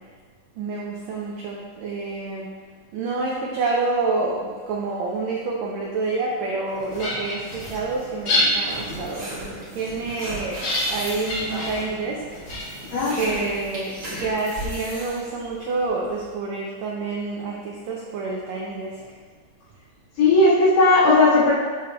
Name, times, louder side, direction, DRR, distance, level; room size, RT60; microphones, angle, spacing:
voice 1, 0.6-2.5 2.9-12.2 13.1-19.0, right 3 dB, 85° right, -2 dB, 1.5 m, -28 dB
sound 1, 6.7-14.1, left 1 dB, 45° left, 2.2 m, -29 dB
sound 2, 7.6-16.3, right 1 dB, 45° right, 1.3 m, -37 dB
voice 2, 12.9-13.4 20.2-21.5, left 2 dB, 80° left, -10 dB, 3.1 m, -17 dB
6.6 x 6.6 x 2.3 m, 1.6 s
omnidirectional pair, 3.8 m